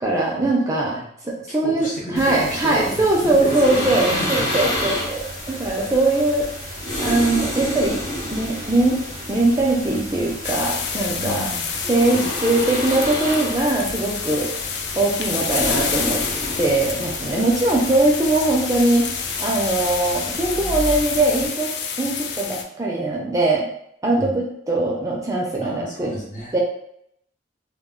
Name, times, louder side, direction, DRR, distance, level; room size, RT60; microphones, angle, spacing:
voice 1, 0.0-1.0 1.2-6.7 7.0-8.1 8.3-9.0 9.3-11.4 11.9-14.5 15.0-16.2 16.6-19.1 19.4-21.7 22.0-23.7 24.0-26.1 26.5-26.6, right 2 dB, 20° right, -3 dB, 0.4 m, -21 dB
voice 2, 1.5-4.9 11.2-11.7 12.1-12.3 24.1-24.4 25.6-26.6, equal, 45° left, -3 dB, 0.7 m, -32 dB
sound 1, 2.2-21.5, left 1 dB, 80° left, 1.0 m, -30 dB
sound 2, 10.4-22.6, left 6 dB, 65° left, 0.3 m, -29 dB
2.2 x 2.0 x 3.6 m, 0.72 s
head